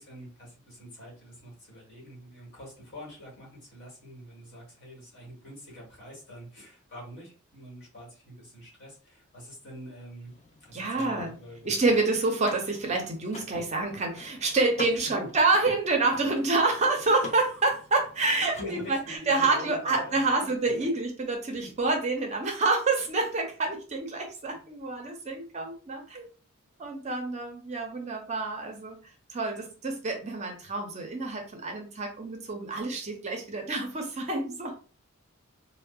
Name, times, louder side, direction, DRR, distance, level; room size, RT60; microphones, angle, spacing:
voice 1, 0.0-10.4 10.7-12.0 14.9-15.3 18.5-20.5 20.8-20.9 21.5-21.7 24.5-24.6, equal, 50° left, -3 dB, 1.4 m, -45 dB
Car / Mechanisms, 10.2-19.2, left 2 dB, 30° left, 0.6 m, -45 dB
voice 2, 10.7-11.3 11.6-26.3 26.8-29.0 29.3-34.8, right 3 dB, 30° right, 3 dB, 0.5 m, -28 dB
3.5 x 2.0 x 2.3 m, 0.37 s
head